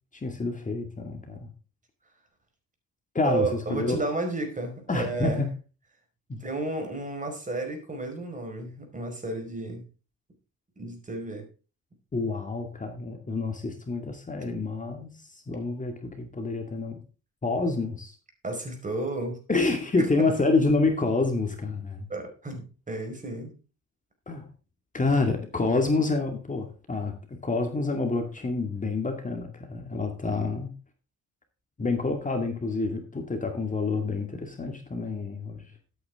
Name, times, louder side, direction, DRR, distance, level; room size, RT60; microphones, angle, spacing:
voice 1, 0.2-1.5 3.1-4.0 4.9-5.5 6.3-6.4 12.1-17.0 17.4-18.2 19.5-22.1 24.3-24.4 24.9-27.1 27.4-30.7 31.8-35.6, left 3 dB, 25° left, 5 dB, 2.2 m, -28 dB
voice 2, 3.2-5.5 6.4-9.9 10.8-11.5 18.4-19.4 20.0-20.3 22.1-23.5, right 2 dB, 25° right, 4 dB, 5.0 m, -32 dB
13.0 x 8.8 x 3.7 m, 0.33 s
cardioid pair, 90°, 30 cm